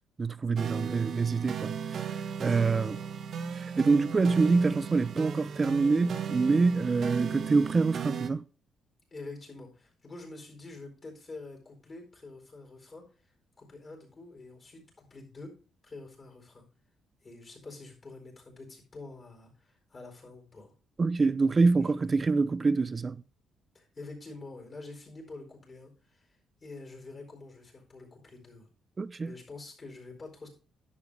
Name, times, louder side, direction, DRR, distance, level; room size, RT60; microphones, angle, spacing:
voice 1, 0.2-2.0 2.4-3.0 3.5-8.4 21.0-23.2 29.0-29.3, right 4 dB, 30° right, 0.6 m, -26 dB
sound 1, 0.6-8.3, right 7 dB, 60° right, 1.0 m, -36 dB
voice 2, 2.4-3.1 6.8-7.1 9.1-13.0 13.6-15.5 15.8-16.6 17.2-20.7 21.8-22.2 23.7-26.3 26.6-28.7 29.2-30.5, left 3 dB, 35° left, 4.3 m, -47 dB
11.0 x 7.0 x 3.3 m
cardioid pair, 90°, 0 cm